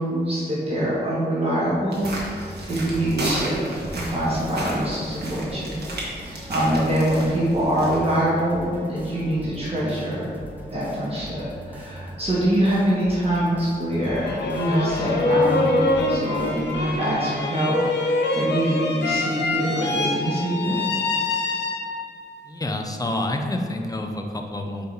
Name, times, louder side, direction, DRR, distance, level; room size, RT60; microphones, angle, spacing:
voice 1, 0.0-5.8 6.1-10.4 10.7-20.8, right 1 dB, 35° right, -8 dB, 1.5 m, -24 dB
sound 1, 1.9-8.0, right 1 dB, 70° right, 1.5 m, -33 dB
sound 2, 2.0-16.8, equal, 10° right, 0.9 m, -40 dB
sound 3, 14.0-22.2, left 2 dB, 80° left, 0.8 m, -25 dB
voice 2, 22.5-24.9, left 1 dB, 20° left, 3 dB, 0.6 m, -28 dB
4.8 x 4.6 x 5.3 m, 2.2 s
wide cardioid pair, 125°, 18 cm